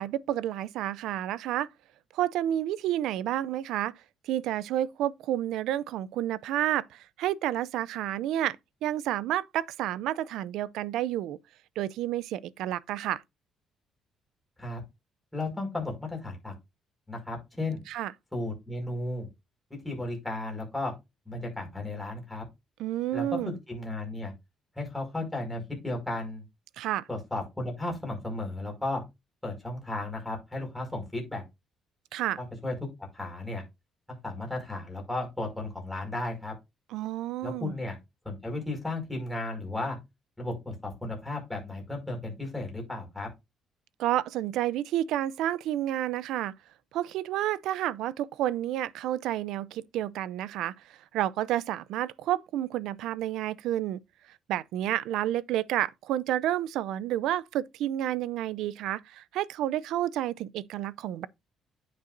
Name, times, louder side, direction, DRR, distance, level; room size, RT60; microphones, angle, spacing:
voice 1, 0.0-1.7 2.1-3.9 4.2-8.6 8.8-11.4 11.8-13.2 17.9-18.1 22.8-23.5 26.8-27.1 32.1-32.4 36.9-37.7 44.0-46.5 46.9-54.0 54.5-61.3, right 12 dB, 85° right, 0.4 m, -30 dB
voice 2, 15.3-16.5 17.1-17.8 18.3-19.3 19.8-20.9 21.3-22.4 23.1-23.3 23.7-24.3 24.8-26.4 27.1-29.0 29.4-31.4 32.4-32.7 33.1-33.6 34.2-36.5 37.4-38.0 38.2-40.0 40.4-43.3, left 2 dB, 5° left, 5.4 m, -34 dB
9.7 x 8.5 x 2.6 m
cardioid pair, 150°, 0 cm